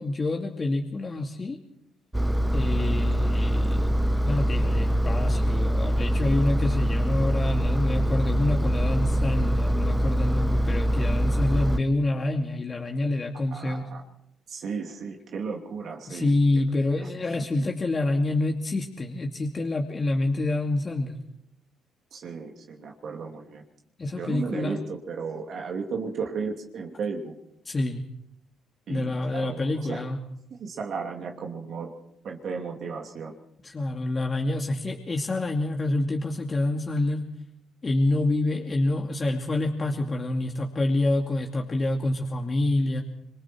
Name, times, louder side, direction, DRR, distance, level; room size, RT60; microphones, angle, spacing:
voice 1, 0.0-1.6 2.5-13.8 16.1-21.2 24.0-24.8 27.7-28.0 28.9-30.2 33.6-37.3 37.8-43.0, left 2 dB, 35° left, 2 dB, 2.4 m, -27 dB
Engine, 2.1-11.8, equal, 10° right, 1.1 m, -24 dB
voice 2, 13.5-14.0 14.5-16.6 17.0-17.1 17.4-17.7 22.1-23.6 24.1-27.4 28.9-30.1 30.5-31.9 32.2-33.4, right 5 dB, 60° right, 2 dB, 2.8 m, -35 dB
25.5 x 22.5 x 4.6 m, 0.79 s
supercardioid pair, 65°, 0 cm